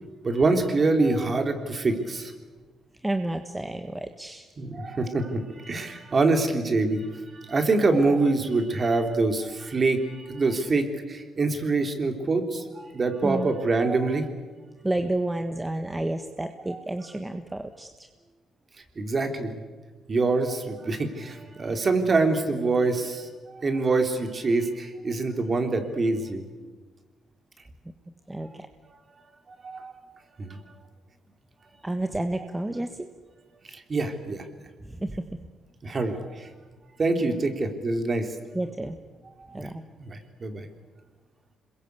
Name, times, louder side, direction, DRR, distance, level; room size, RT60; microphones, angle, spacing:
voice 1, 0.2-2.3 4.6-14.3 16.7-16.8 18.9-19.6 20.1-26.4 28.8-28.9 29.6-29.9 30.4-30.7 33.7-34.4 35.8-36.5 37.0-38.3 39.4-39.7 40.0-40.7, right 3 dB, 35° right, 6 dB, 3.5 m, -25 dB
voice 2, 3.0-4.5 13.2-13.5 14.8-18.1 28.3-28.7 31.8-33.1 34.9-35.1 38.5-38.9 39.5-39.8, right 1 dB, 15° right, 7 dB, 1.4 m, -30 dB
26.5 x 22.0 x 8.3 m, 1.3 s
cardioid pair, 90°, 0 cm